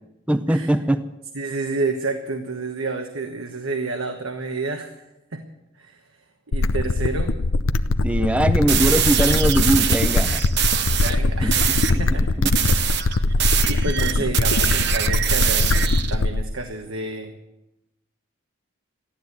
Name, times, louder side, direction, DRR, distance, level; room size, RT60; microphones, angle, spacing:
voice 1, 0.3-1.0 8.0-10.4 11.4-11.5 12.4-12.5 14.2-14.3, right 1 dB, 5° right, 9 dB, 0.5 m, -21 dB
voice 2, 1.3-5.0 5.3-5.4 5.7-6.0 6.5-7.3 11.0-11.7 12.0-12.4 12.9-17.3, right 3 dB, 85° right, 4 dB, 1.2 m, -30 dB
sound 1, 6.5-16.5, left 2 dB, 85° left, 0.6 m, -21 dB
sound 2, 8.7-11.2 11.5-12.0 12.4-16.1, right 9 dB, 55° right, 0.9 m, -23 dB
14.0 x 12.0 x 8.1 m, 0.96 s
head